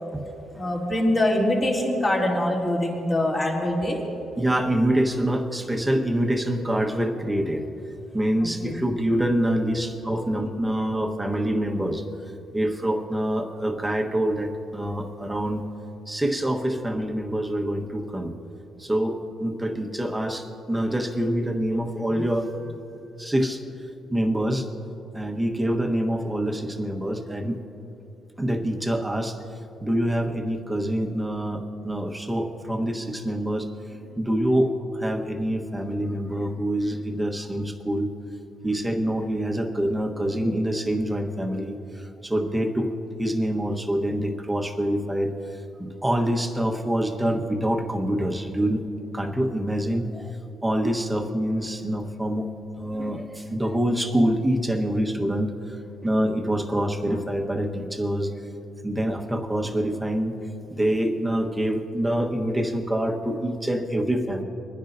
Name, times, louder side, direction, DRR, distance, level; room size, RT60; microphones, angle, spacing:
voice 1, 0.5-4.0 8.4-8.8 9.7-9.8 10.1-10.3, left 1 dB, 30° left, -3 dB, 2.8 m, -24 dB
voice 2, 4.4-7.6 8.1-12.0 12.5-15.6 16.1-18.3 18.8-22.7 23.2-23.6 24.1-24.7 25.1-27.6 28.4-29.4 29.8-33.7 34.1-38.1 38.6-42.9 43.2-45.3 45.8-48.8 49.1-50.4 50.6-52.5 52.8-55.5 56.0-58.3 58.8-60.3 60.7-64.4, right 1 dB, 10° right, 3 dB, 1.2 m, -25 dB
24.5 x 10.0 x 2.6 m, 2.9 s
cardioid pair, 90°, 0 cm